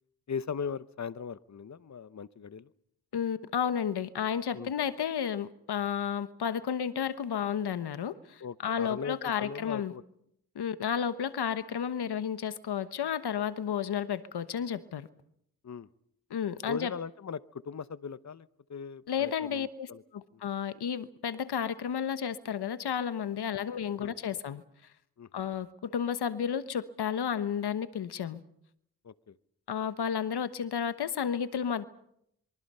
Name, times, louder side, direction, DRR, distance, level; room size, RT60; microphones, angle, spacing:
voice 1, 0.3-2.7 4.5-4.7 8.4-10.0 15.6-15.9 16.7-20.0 20.3-20.4 24.0-24.2 25.2-25.3 29.0-29.4, left 6 dB, 45° left, 16 dB, 0.9 m, -39 dB
voice 2, 3.1-9.9 10.5-15.1 16.3-16.9 19.1-24.6 25.3-28.4 29.7-31.8, left 8 dB, 85° left, 13 dB, 1.2 m, -32 dB
26.5 x 23.5 x 5.6 m, 0.74 s
cardioid pair, 55°, 38 cm